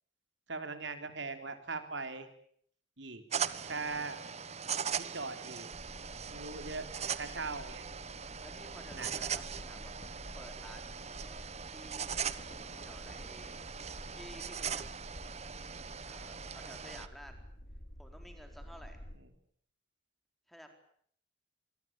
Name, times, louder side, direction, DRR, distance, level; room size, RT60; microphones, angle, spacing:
voice 1, 0.5-2.3 3.0-3.2 3.7-4.2 5.0-5.7 6.2-6.8 7.1-7.8 8.9-9.1, right 4 dB, 65° right, 8 dB, 3.8 m, -40 dB
sound 1, 3.3-17.1, right 7 dB, 35° right, 1.1 m, -40 dB
sound 2, 5.7-19.2, equal, 50° left, 4.9 m, -51 dB
voice 2, 8.4-9.9 10.4-12.2 12.8-13.6 14.1-14.8 16.0-17.4 18.0-19.0 20.5-20.7, equal, ahead, 5 dB, 4.4 m, -53 dB
sound 3, 8.9-10.8 12.4-14.1, left 1 dB, 30° left, 2.9 m, -56 dB
26.5 x 21.5 x 9.0 m, 0.63 s
head